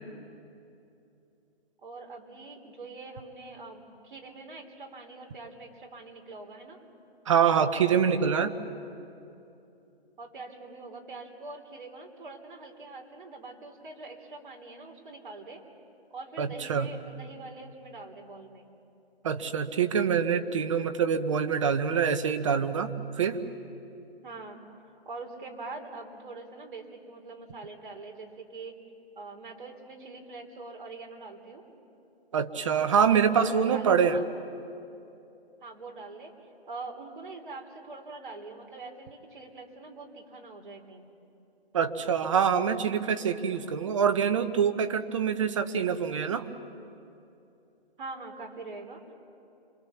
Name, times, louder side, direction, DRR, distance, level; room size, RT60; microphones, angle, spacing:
voice 1, 1.8-6.8 10.2-15.6 16.1-18.7 24.2-24.6 25.1-28.7 29.2-31.6 33.0-34.2 35.6-36.3 36.7-41.1 48.0-49.1, right 3 dB, 50° right, 2 dB, 3.8 m, -44 dB
voice 2, 7.3-8.5 16.4-16.9 19.2-22.9 23.2-23.4 32.3-34.2 41.7-46.5, right 7 dB, 30° right, 10 dB, 1.0 m, -25 dB
27.0 x 24.0 x 7.1 m, 2.8 s
hypercardioid pair, 155°, 32 cm